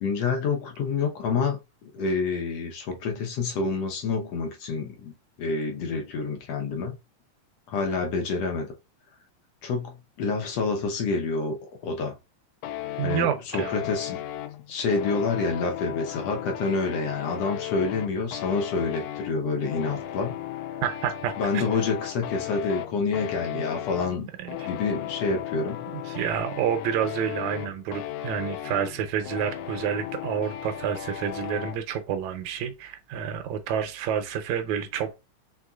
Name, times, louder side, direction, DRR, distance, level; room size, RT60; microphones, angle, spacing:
voice 1, 0.0-5.1 5.4-7.0 7.7-8.7 9.6-12.2 13.0-14.2 14.7-20.4 21.4-24.3 24.7-25.8, left 4 dB, 65° left, 1.8 m, -28 dB
sound 1, 12.6-31.8, left 12 dB, 80° left, 1.9 m, -36 dB
voice 2, 13.0-13.9 20.8-21.6 23.5-23.6 24.4-24.7 25.9-35.1, right 9 dB, 75° right, 2.0 m, -29 dB
5.4 x 3.5 x 2.4 m
omnidirectional pair, 3.4 m